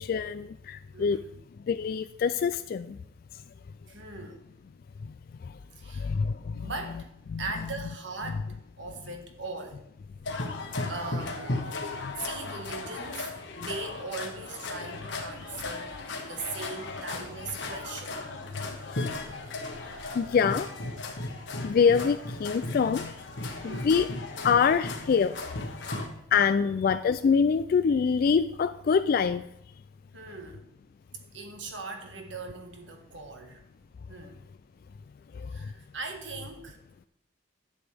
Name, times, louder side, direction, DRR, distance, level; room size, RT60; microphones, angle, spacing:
voice 1, 0.0-1.2 1.7-3.0 6.0-6.7 7.3-7.4 12.0-12.1 20.2-20.7 21.6-23.1 23.6-24.1 24.4-25.3 26.3-29.4, left 6 dB, 50° left, 11 dB, 0.3 m, -25 dB
voice 2, 0.9-1.4 3.9-4.4 5.7-6.1 6.6-7.1 7.4-9.8 10.9-11.6 12.2-18.2 23.6-24.0 26.5-26.7 30.1-30.7 31.3-33.6 34.1-34.4 35.5-36.8, right 3 dB, 80° right, 4 dB, 1.6 m, -40 dB
sound 1, 10.3-26.1, left 2 dB, 75° left, 1.4 m, -36 dB
11.0 x 8.1 x 3.4 m, 0.80 s
head